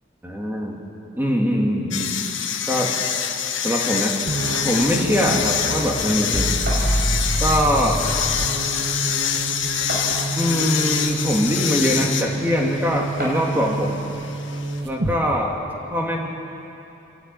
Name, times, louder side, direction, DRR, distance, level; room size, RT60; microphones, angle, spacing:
voice 1, 0.2-0.8 1.2-2.1 2.7-2.9 3.6-4.2 4.6-6.6 7.4-8.1 10.4-14.0 14.8-15.5 15.9-16.3, equal, 10° right, -1 dB, 2.4 m, -22 dB
sound 1, 1.9-14.8, left 8 dB, 75° left, 1.5 m, -26 dB
sound 2, 4.3-15.2, right 2 dB, 65° right, 1.3 m, -27 dB
sound 3, 6.7-6.9 8.1-8.2 8.6-8.7 9.9-10.5 11.4-11.5 13.2-13.6, right 1 dB, 50° right, 5.0 m, -30 dB
27.5 x 12.0 x 9.4 m, 2.9 s
head